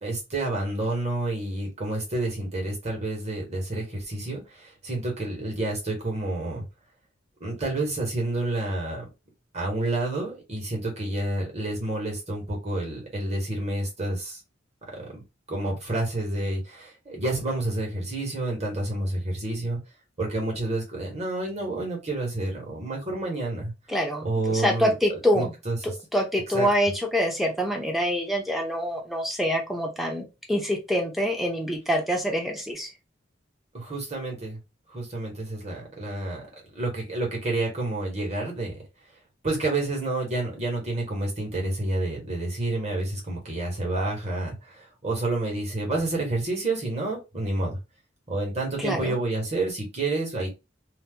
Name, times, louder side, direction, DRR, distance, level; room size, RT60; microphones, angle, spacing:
voice 1, 0.0-6.6 7.4-9.0 9.5-14.4 14.9-15.2 15.5-19.8 20.2-23.7 24.2-24.9 25.3-25.8 26.5-26.7 33.7-34.6 34.9-36.4 36.7-38.8 39.4-47.8 48.3-50.5, right 2 dB, 35° right, -1 dB, 1.4 m, -29 dB
voice 2, 23.9-25.5 25.8-32.9 48.8-49.2, equal, ahead, 2 dB, 0.6 m, -26 dB
2.7 x 2.1 x 3.6 m, 0.25 s
head